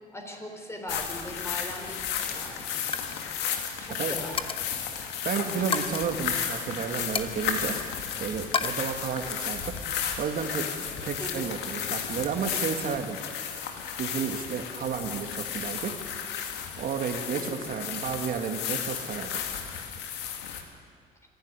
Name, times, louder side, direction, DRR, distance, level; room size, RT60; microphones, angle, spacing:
voice 1, 0.1-2.9 3.8-4.8 11.2-11.5 17.3-17.6, left 1 dB, 15° left, 3 dB, 4.1 m, -40 dB
sound 1, 0.9-20.6, left 8 dB, 90° left, 2.2 m, -33 dB
Coin (dropping), 1.6-1.9 2.2-2.4 2.8-3.1 3.4-3.6 4.4-4.8 5.7-6.1 7.2-8.1 8.5-8.7, left 5 dB, 30° left, 1.1 m, -32 dB
voice 2, 5.3-7.8 8.2-9.8 10.2-13.2 14.0-15.9 16.8-19.4, right 6 dB, 55° right, 5 dB, 1.8 m, -32 dB
25.0 x 11.5 x 9.7 m, 2.1 s
cardioid pair, 110°, 17 cm